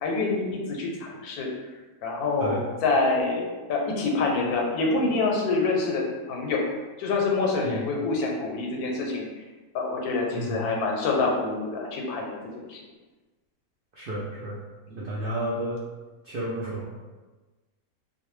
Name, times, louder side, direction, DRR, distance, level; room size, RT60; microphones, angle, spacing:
voice 1, 0.0-1.5 2.0-3.4 3.7-6.7 7.0-9.3 9.7-12.4 12.7-12.8 14.9-15.0, left 3 dB, 90° left, 0 dB, 1.1 m, -26 dB
voice 2, 10.3-10.6 13.9-14.6 15.0-15.8 16.2-16.9, right 1 dB, 90° right, -6 dB, 0.4 m, -31 dB
2.5 x 2.0 x 3.1 m, 1.3 s
omnidirectional pair, 1.5 m